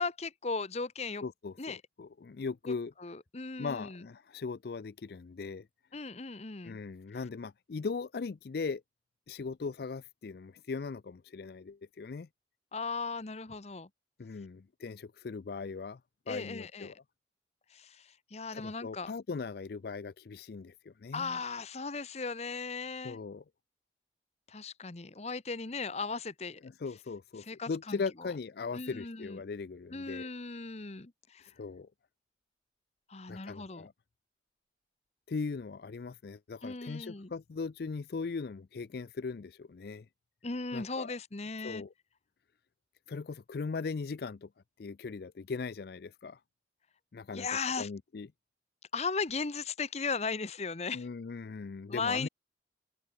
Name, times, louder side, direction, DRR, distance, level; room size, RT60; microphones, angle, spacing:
voice 1, 0.0-1.2 1.6-1.8 2.7-2.8 3.0-4.0 5.9-6.8 12.7-13.9 16.3-16.9 17.7-19.1 21.1-23.2 24.5-26.6 27.5-28.3 28.7-29.4 29.9-31.5 33.1-33.9 36.6-37.3 40.4-41.8 47.3-47.9 48.9-51.1 51.9-52.3, left 4 dB, 35° left, 1.0 m, -37 dB
voice 2, 1.2-2.9 3.6-5.7 6.6-8.8 9.3-12.3 14.2-16.0 16.3-17.0 18.5-21.4 23.0-23.4 26.6-30.3 31.4-31.9 33.3-33.9 35.3-40.1 40.7-41.1 41.6-41.9 43.1-44.5 44.8-46.4 47.1-48.3 50.9-52.3, left 4 dB, 60° left, 0.4 m, -39 dB
open air
head